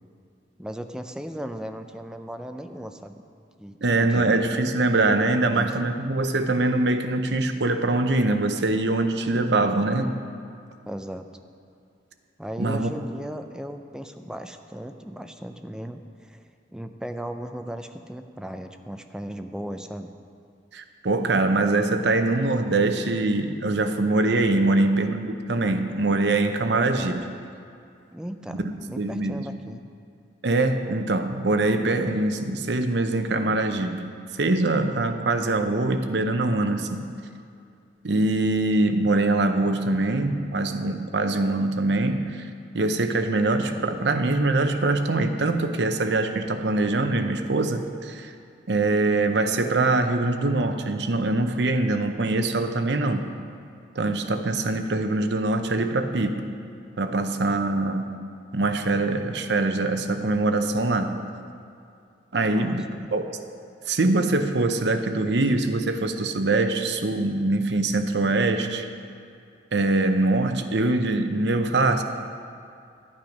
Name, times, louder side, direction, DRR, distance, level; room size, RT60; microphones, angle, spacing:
voice 1, 0.6-3.1 3.6-4.4 5.5-5.7 9.6-9.7 10.9-11.3 12.4-16.4 16.7-20.1 28.1-28.6 28.9-29.8 62.5-63.1, equal, 5° right, 6 dB, 0.4 m, -36 dB
voice 2, 3.8-10.1 12.6-12.9 20.7-27.3 28.6-29.5 30.4-34.0 34.4-37.1 38.0-42.5 42.7-48.3 48.7-53.3 54.0-56.5 57.0-58.1 58.5-61.2 62.3-63.4 63.9-68.9 69.7-72.0, right 2 dB, 70° right, 7 dB, 0.7 m, -23 dB
12.0 x 8.8 x 5.3 m, 2.4 s
head